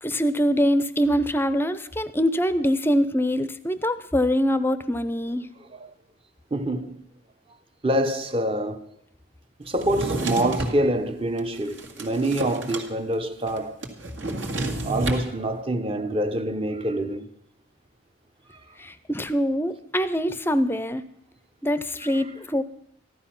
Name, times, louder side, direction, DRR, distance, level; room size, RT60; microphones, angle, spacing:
voice 1, 0.0-5.5 18.8-21.0 21.6-22.6, equal, 10° left, 0.6 m, -24 dB
voice 2, 6.5-7.0 7.8-8.9 9.6-13.8 14.2-14.4 14.8-17.3, right 1 dB, 25° right, 0.9 m, -26 dB
Drawer open or close, 9.8-10.8 11.4-12.9 13.1-13.2 13.5-15.3, right 2 dB, 65° right, 2.0 m, -30 dB
15.0 x 12.0 x 5.9 m
head